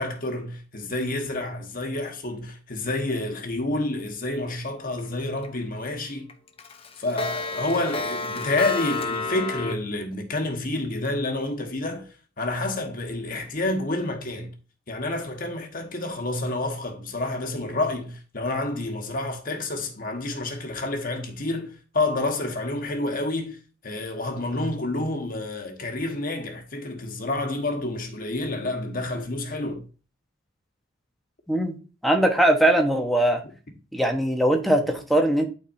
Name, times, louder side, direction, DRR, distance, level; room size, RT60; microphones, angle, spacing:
voice 1, 0.0-6.3 7.0-12.1 12.4-14.5 14.9-29.8, left 2 dB, 45° left, 1.3 m, -29 dB
Clock, 5.0-5.5 5.9-6.0 6.3-9.7, left 3 dB, 30° left, 0.7 m, -30 dB
voice 2, 32.0-33.4 33.9-35.5, right 1 dB, ahead, 1.1 m, -20 dB
12.0 x 4.3 x 2.7 m
head